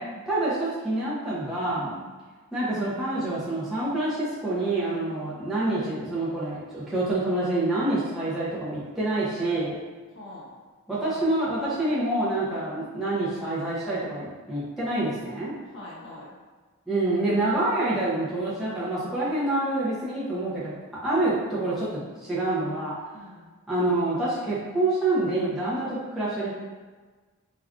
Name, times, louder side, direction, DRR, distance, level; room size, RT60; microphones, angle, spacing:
voice 1, 0.3-1.9 2.5-9.8 10.9-15.5 16.9-20.8 21.0-22.9 23.7-26.5, right 2 dB, ahead, -11 dB, 0.5 m, -27 dB
voice 2, 1.7-2.1 5.1-5.2 10.1-10.5 11.1-11.2 15.7-16.3 21.1-21.2 23.1-23.5 25.9-26.0, left 2 dB, 60° left, -6 dB, 0.8 m, -44 dB
3.4 x 2.4 x 2.3 m, 1.3 s
head